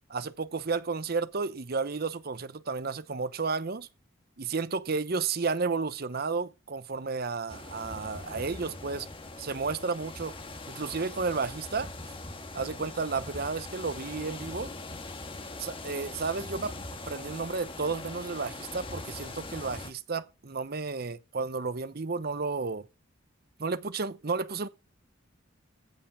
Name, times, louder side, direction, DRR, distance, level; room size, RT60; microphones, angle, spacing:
voice 1, 0.1-3.9 4.4-9.1 9.4-10.3 10.7-11.9 12.5-14.7 15.6-16.8 17.1-22.9 23.6-24.7, right 4 dB, 50° right, 0.8 m, -32 dB
sound 1, 7.5-19.9, left 2 dB, 25° left, 1.5 m, -42 dB
15.5 x 5.6 x 6.1 m
head